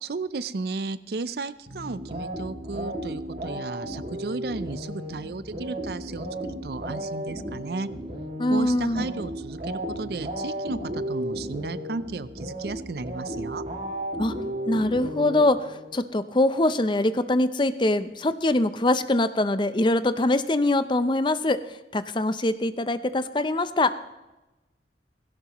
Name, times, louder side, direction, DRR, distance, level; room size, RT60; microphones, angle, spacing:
voice 1, 0.0-7.9 8.5-13.6, right 3 dB, 60° right, 15 dB, 0.5 m, -34 dB
sound 1, 1.7-16.0, equal, 45° right, 2.3 m, -34 dB
voice 2, 8.4-9.0 14.2-14.3 14.7-21.6 21.9-24.0, left 2 dB, 25° left, 12 dB, 0.5 m, -23 dB
16.5 x 16.5 x 3.0 m, 1.0 s
head